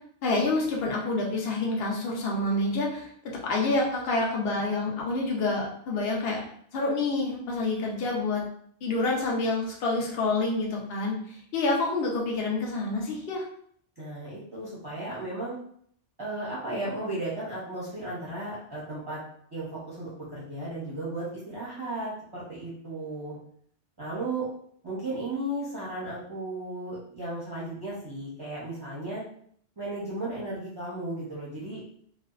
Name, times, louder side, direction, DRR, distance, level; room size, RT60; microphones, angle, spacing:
voice 1, 0.2-6.4 6.7-8.4 8.8-13.4, left 2 dB, 60° left, -1 dB, 0.8 m, -28 dB
voice 2, 14.0-15.5 16.2-19.2 19.5-23.4 24.0-24.5 24.8-29.2 29.8-31.8, right 2 dB, 25° right, -8 dB, 0.6 m, -35 dB
2.6 x 2.2 x 2.3 m, 0.62 s
omnidirectional pair, 1.2 m